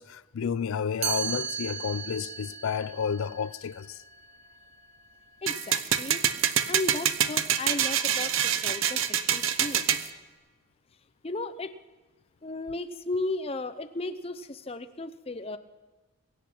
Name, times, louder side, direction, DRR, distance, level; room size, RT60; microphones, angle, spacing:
voice 1, 0.0-4.0, left 6 dB, 75° left, 0.4 m, -31 dB
Chime, 1.0-6.9, right 8 dB, 30° right, 0.8 m, -38 dB
voice 2, 5.4-6.3 6.7-9.9 11.2-11.7 12.4-15.6, left 2 dB, 25° left, 0.6 m, -35 dB
sound 1, 5.5-10.1, right 9 dB, 70° right, 0.7 m, -26 dB
22.5 x 8.5 x 6.0 m
head